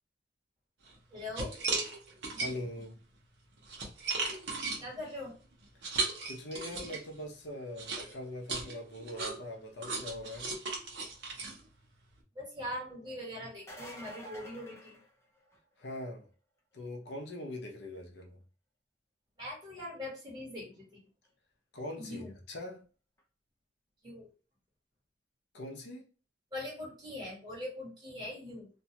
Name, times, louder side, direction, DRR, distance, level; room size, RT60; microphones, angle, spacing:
sound 1, 0.8-1.0 1.3-2.8 3.4-7.2 7.8-12.2, right 3 dB, 75° right, 0.9 m, -36 dB
voice 1, 1.1-1.5 4.8-5.3 12.3-15.0 19.4-21.0 22.0-22.3 24.0-24.3 26.5-28.7, left 1 dB, 25° right, 1.4 m, -41 dB
voice 2, 2.3-3.0 5.8-5.9 6.2-10.6 15.8-16.3 16.7-18.4 21.7-22.8 25.5-26.0, left 1 dB, 65° left, 0.6 m, -42 dB
sound 2, 13.5-15.7 21.3-21.4 23.2-23.3, right 1 dB, 15° left, 0.6 m, -49 dB
2.5 x 2.3 x 2.8 m
head